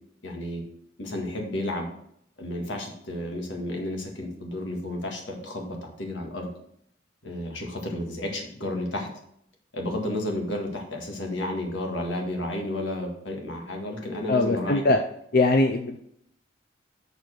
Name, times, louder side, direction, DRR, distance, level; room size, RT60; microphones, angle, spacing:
voice 1, 0.2-0.6 1.0-1.9 2.4-6.5 7.2-9.1 9.7-14.8, left 1 dB, 85° left, 1 dB, 1.9 m, -32 dB
voice 2, 14.3-15.0 15.3-16.0, left 2 dB, 50° left, 5 dB, 0.5 m, -21 dB
6.8 x 4.5 x 6.5 m, 0.71 s
head